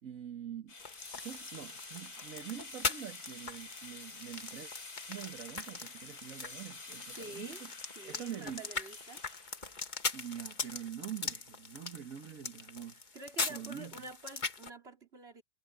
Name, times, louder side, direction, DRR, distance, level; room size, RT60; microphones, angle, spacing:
voice 1, 0.0-0.7 1.2-4.7 5.1-7.7 8.0-8.6 10.1-13.2 13.5-14.1, right 9 dB, 65° right, 1.7 m, -45 dB
sound 1, 0.7-10.7, left 3 dB, 75° left, 4.5 m, -49 dB
sound 2, 0.8-14.7, left 4 dB, 35° left, 1.4 m, -41 dB
voice 2, 7.2-7.6 8.0-9.2 13.1-15.4, right 3 dB, 40° right, 3.6 m, -48 dB
omnidirectional pair, 1.6 m